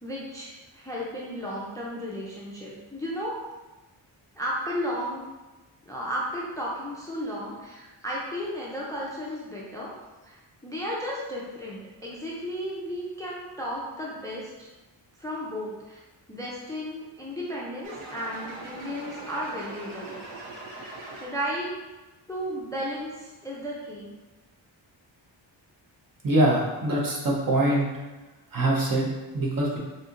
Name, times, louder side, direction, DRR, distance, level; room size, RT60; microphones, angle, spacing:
voice 1, 0.0-3.4 4.4-5.2 5.9-9.9 10.2-14.7 15.2-16.0 16.3-20.2 20.7-21.7 22.3-24.1, equal, 10° left, -5 dB, 0.4 m, -34 dB
sound 1, 17.8-21.6, right 2 dB, 80° right, 0.8 m, -41 dB
voice 2, 26.2-27.9 28.5-29.8, right 1 dB, 45° right, -3 dB, 0.8 m, -24 dB
4.1 x 2.7 x 2.5 m, 1.1 s
wide cardioid pair, 145°, 46 cm